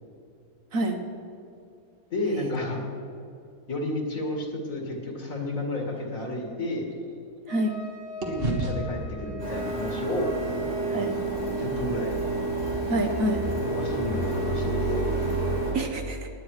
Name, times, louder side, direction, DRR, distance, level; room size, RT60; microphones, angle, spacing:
voice 1, 2.1-2.8 3.7-6.9 8.3-10.6 10.9-12.4 13.6-15.0, left 1 dB, 60° left, 1 dB, 2.4 m, -32 dB
sound 1, 5.5-7.8 8.2-12.4, right 2 dB, 40° right, 1.7 m, -36 dB
Wind instrument woodwind instrument, 7.5-11.3, left 2 dB, 90° left, 3.0 m, -40 dB
voice 2, 7.5-7.8 10.9-11.1 12.9-13.4 15.7-16.3, right 1 dB, 60° right, 4 dB, 1.6 m, -27 dB
Printer, 9.4-15.7, right 2 dB, 85° right, 4.3 m, -29 dB
19.5 x 9.3 x 4.9 m, 2.6 s
omnidirectional pair, 1.6 m